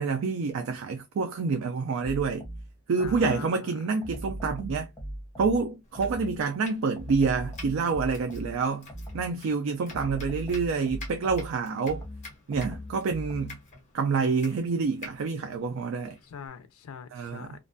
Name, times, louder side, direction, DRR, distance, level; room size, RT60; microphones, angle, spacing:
voice 1, 0.0-2.5 2.9-4.9 5.4-8.9 9.1-12.0 12.5-13.6 13.9-16.2 17.1-17.5, right 4 dB, 65° right, 0.3 m, -27 dB
sound 1, 2.0-3.6 4.0-6.5 7.0-9.4 9.9-13.7, equal, 15° left, 0.6 m, -40 dB
voice 2, 3.0-3.8 10.1-11.1 16.2-17.6, left 6 dB, 70° left, 0.4 m, -45 dB
Domestic sounds home sounds, 5.8-16.5, left 3 dB, 35° left, 0.9 m, -50 dB
2.5 x 2.2 x 2.5 m
head